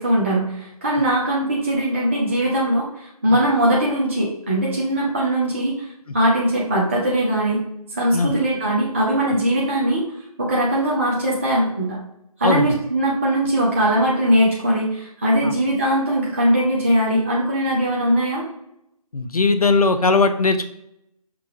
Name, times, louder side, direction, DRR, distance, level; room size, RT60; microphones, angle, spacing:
voice 1, 0.0-5.9 6.1-7.6 7.9-10.1 10.4-12.0 12.4-18.4, right 1 dB, 20° right, -4 dB, 0.5 m, -20 dB
voice 2, 12.4-12.7 15.4-15.5 19.1-20.7, left 3 dB, 70° left, 8 dB, 0.6 m, -19 dB
5.9 x 2.3 x 2.9 m, 0.79 s
figure-of-eight pair, 155°, 19 cm